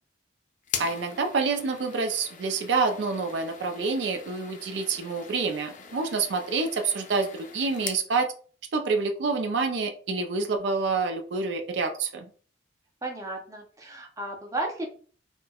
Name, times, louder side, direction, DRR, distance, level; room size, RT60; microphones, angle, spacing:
sound 1, 0.6-8.1, left 6 dB, 45° left, 0.5 m, -41 dB
voice 1, 0.8-8.3 8.7-12.3, right 4 dB, 70° right, 5 dB, 0.4 m, -27 dB
voice 2, 13.0-14.9, right 2 dB, 20° right, 1 dB, 0.6 m, -34 dB
4.2 x 2.1 x 2.3 m, 0.42 s
head